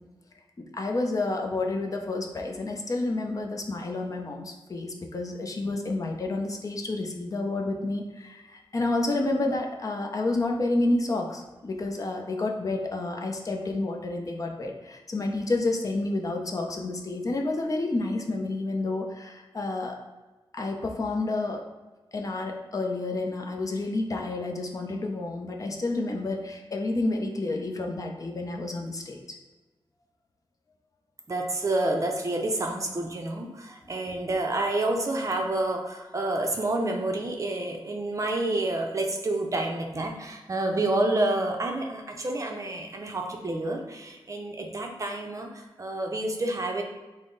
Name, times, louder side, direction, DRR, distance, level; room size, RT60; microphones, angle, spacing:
voice 1, 0.6-20.0 20.5-21.6 22.1-29.2, left 2 dB, 40° left, 1 dB, 0.5 m, -30 dB
voice 2, 31.3-46.8, right 2 dB, 35° right, 2 dB, 0.5 m, -29 dB
5.5 x 2.0 x 3.8 m, 1.2 s
wide cardioid pair, 130°, 9 cm